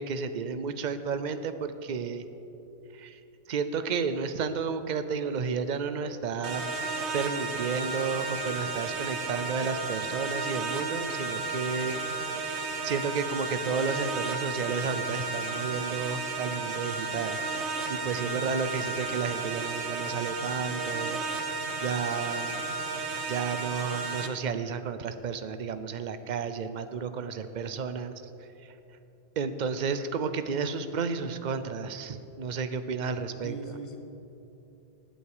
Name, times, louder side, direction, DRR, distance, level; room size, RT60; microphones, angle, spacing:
voice 1, 0.0-2.2 2.9-3.2 3.5-6.6 7.1-12.0 12.8-17.4 17.9-21.2 21.8-22.6 23.3-28.2 29.4-33.8, right 5 dB, 50° right, 10 dB, 0.7 m, -32 dB
sound 1, 6.4-24.3, right 3 dB, 90° right, 1.2 m, -33 dB
voice 2, 18.2-18.5 33.4-34.0, right 1 dB, 30° left, 4 dB, 1.2 m, -40 dB
19.0 x 8.5 x 4.9 m, 2.9 s
omnidirectional pair, 1.1 m